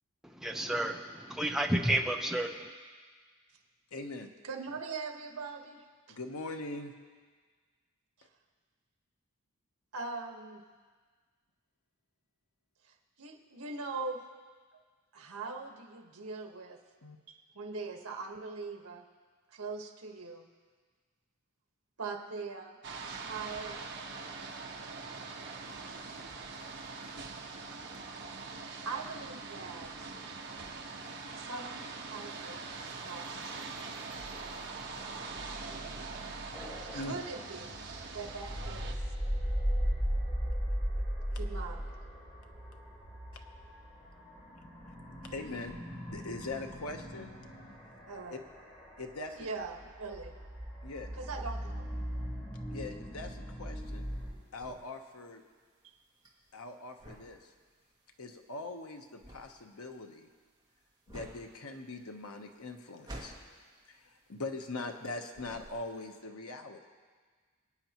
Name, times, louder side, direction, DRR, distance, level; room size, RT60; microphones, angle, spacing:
voice 1, 0.2-2.7, right 1 dB, ahead, 3 dB, 0.6 m, -31 dB
voice 2, 3.9-4.3 6.1-6.9 17.0-17.2 36.9-37.1 45.3-45.8 46.0-47.3 49.0-49.5 50.8-51.1 52.7-54.1 54.5-55.4 56.5-57.4 58.2-60.3 61.1-63.3 63.9-66.9, left 2 dB, 75° left, 4 dB, 1.1 m, -42 dB
voice 3, 4.4-6.2 9.9-10.6 13.2-14.2 15.1-16.8 17.3-19.0 19.5-20.5 22.0-22.8 23.0-23.9 26.7-26.8 28.8-30.1 30.5-30.8 31.4-32.6 33.0-33.7 36.9-37.7 38.1-38.9 41.3-41.9 48.1-48.4 49.3-50.3 51.2-51.9, right 4 dB, 75° right, 3 dB, 1.5 m, -41 dB
sound 1, 22.8-38.9, right 4 dB, 50° right, 1.2 m, -43 dB
sound 2, 36.5-54.3, equal, 30° left, 4.8 m, -38 dB
sound 3, 53.8-65.0 65.3-66.2, right 1 dB, 20° right, 2.1 m, -51 dB
26.0 x 9.3 x 3.0 m, 1.5 s
head